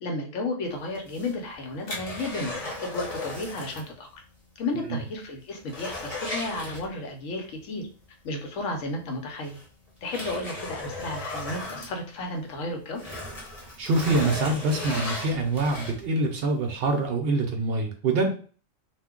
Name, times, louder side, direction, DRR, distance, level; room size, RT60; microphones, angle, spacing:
voice 1, 0.0-4.1 4.6-7.9 8.2-9.6 10.0-13.0, left 2 dB, 85° left, 3 dB, 1.1 m, -33 dB
sound 1, 0.9-3.9 4.2-4.3 4.8-4.9 5.2-7.3 8.7-8.8 9.4-12.5 12.9-16.2 16.7-16.8, left 2 dB, 30° left, 0.9 m, -36 dB
voice 2, 13.8-18.3, right 2 dB, 60° right, 3 dB, 0.7 m, -25 dB
2.4 x 2.2 x 3.6 m, 0.40 s
omnidirectional pair, 1.3 m